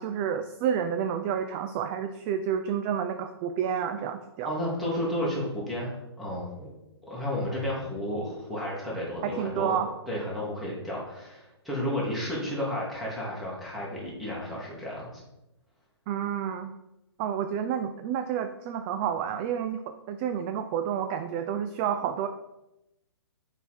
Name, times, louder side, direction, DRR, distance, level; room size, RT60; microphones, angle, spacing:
voice 1, 0.0-4.5 9.2-9.9 16.1-16.7 17.2-22.3, right 8 dB, 25° right, 8 dB, 0.3 m, -30 dB
voice 2, 4.4-6.7 7.1-9.8 10.1-15.2, left 1 dB, ahead, -6 dB, 2.2 m, -32 dB
6.7 x 5.0 x 4.4 m, 0.91 s
figure-of-eight pair, 125°, 14 cm